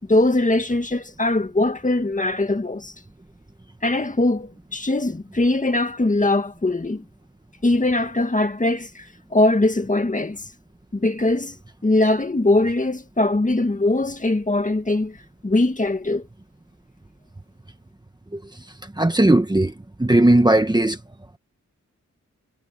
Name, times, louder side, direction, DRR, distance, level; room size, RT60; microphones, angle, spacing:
voice 1, 0.1-2.9 3.8-7.0 7.6-10.4 10.9-11.6 11.8-15.2 15.4-16.3, left 2 dB, 25° left, 2.0 m, -21 dB
voice 2, 19.0-19.7 20.0-21.0, right 1 dB, 15° right, 1.4 m, -17 dB
wide cardioid pair, 120°, 30 cm